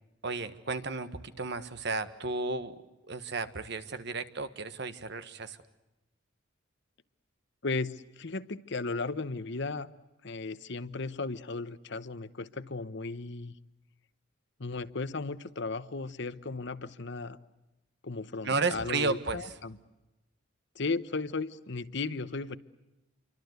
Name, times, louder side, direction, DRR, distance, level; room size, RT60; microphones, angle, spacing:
voice 1, 0.2-2.7 3.1-5.6 18.4-19.5, right 3 dB, 60° right, 11 dB, 1.6 m, -33 dB
voice 2, 7.6-9.9 10.2-13.5 14.6-17.4 18.0-19.8 20.7-22.6, left 3 dB, 65° left, 14 dB, 1.0 m, -35 dB
28.0 x 24.5 x 8.1 m, 0.99 s
head